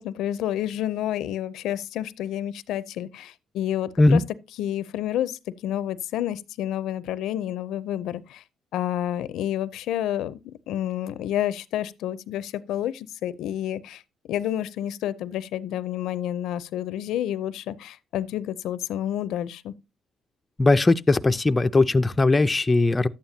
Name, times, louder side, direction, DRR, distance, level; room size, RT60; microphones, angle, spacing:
voice 1, 0.0-4.2 4.6-8.4 8.7-14.0 14.3-19.7, left 11 dB, 85° left, 0.5 m, -29 dB
voice 2, 20.6-23.1, left 2 dB, 20° left, 0.4 m, -19 dB
11.5 x 8.9 x 2.7 m
cardioid pair, 90°, 0 cm